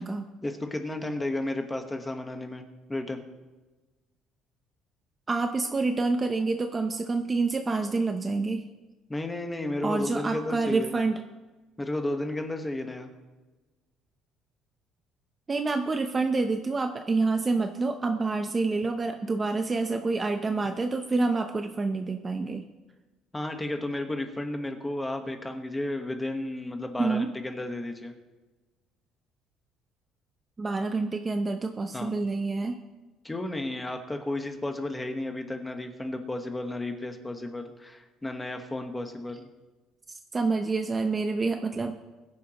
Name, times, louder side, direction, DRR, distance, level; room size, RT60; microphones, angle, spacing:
voice 1, 0.4-2.6 2.9-3.2 9.1-10.9 11.8-13.1 23.3-28.1 31.9-32.1 33.2-39.5, left 1 dB, 10° left, 5 dB, 1.2 m, -33 dB
voice 2, 5.3-8.7 9.8-11.3 15.5-22.7 27.0-27.3 30.6-32.8 40.3-42.0, right 3 dB, 20° right, 5 dB, 0.6 m, -27 dB
22.0 x 10.5 x 3.0 m, 1.2 s
cardioid pair, 150°, 0 cm